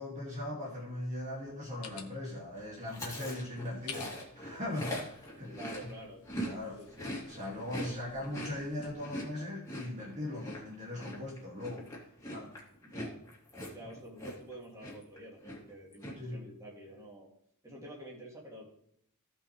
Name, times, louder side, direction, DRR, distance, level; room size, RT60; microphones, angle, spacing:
voice 1, 0.0-5.6 6.4-6.8 7.3-11.9 12.3-12.5 12.9-13.0 16.2-16.4, left 1 dB, 35° right, -4 dB, 2.3 m, -39 dB
sound 1, 1.4-8.9, left 6 dB, 90° left, 1.5 m, -53 dB
Chewing mastication, 2.9-6.5 6.8-14.5 14.8-15.2 15.4-16.1, equal, 15° left, 2.8 m, -42 dB
voice 2, 5.5-6.2 6.7-7.2 7.7-8.0 12.8-13.2 13.7-17.3 17.6-18.6, right 1 dB, 15° right, -4 dB, 2.7 m, -49 dB
16.5 x 5.6 x 3.3 m, 0.71 s
head